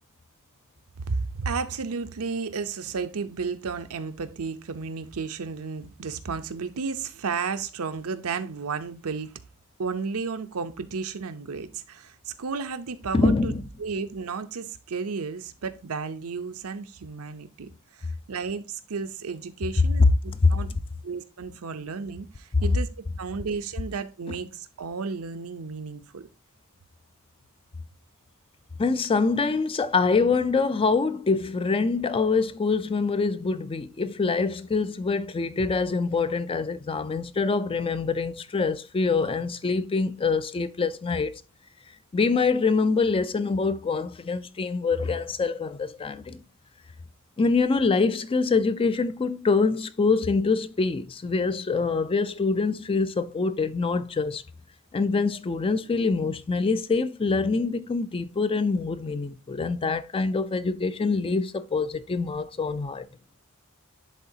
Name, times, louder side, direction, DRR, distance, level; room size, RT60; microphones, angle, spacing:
voice 1, 1.0-9.3 9.8-13.5 13.8-17.7 18.0-20.7 21.0-22.9 23.2-26.3, right 5 dB, 75° right, 0.6 m, -33 dB
voice 2, 13.1-13.7 20.0-20.1 20.4-20.6 28.8-41.4 42.1-46.4 47.4-54.4 54.9-63.1, left 4 dB, 25° left, 0.4 m, -25 dB
10.5 x 3.8 x 2.7 m
head